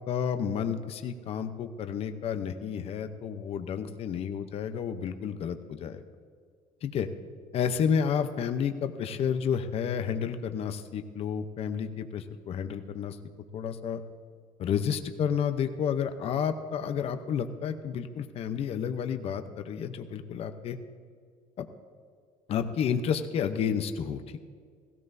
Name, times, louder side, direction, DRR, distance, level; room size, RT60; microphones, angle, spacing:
voice 1, 0.1-6.0 6.8-7.1 7.5-13.2 13.5-14.0 14.6-20.8 21.6-21.7 22.5-24.4, left 7 dB, 45° left, 8 dB, 0.8 m, -31 dB
16.5 x 16.5 x 2.7 m, 2.1 s
cardioid pair, 140°, 14 cm